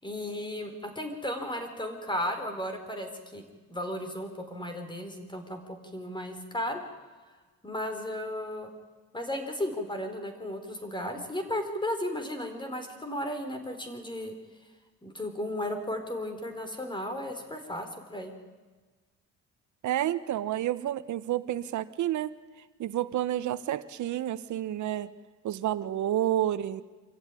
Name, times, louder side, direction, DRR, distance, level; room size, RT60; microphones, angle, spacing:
voice 1, 0.0-3.4 3.7-6.8 7.6-8.7 9.1-14.3 15.0-18.3, left 1 dB, 15° left, 6 dB, 4.3 m, -35 dB
voice 2, 19.8-22.3 22.8-25.1 25.4-26.8, right 12 dB, 75° right, 12 dB, 1.2 m, -30 dB
25.5 x 14.5 x 9.9 m, 1.3 s
cardioid pair, 90°, 30 cm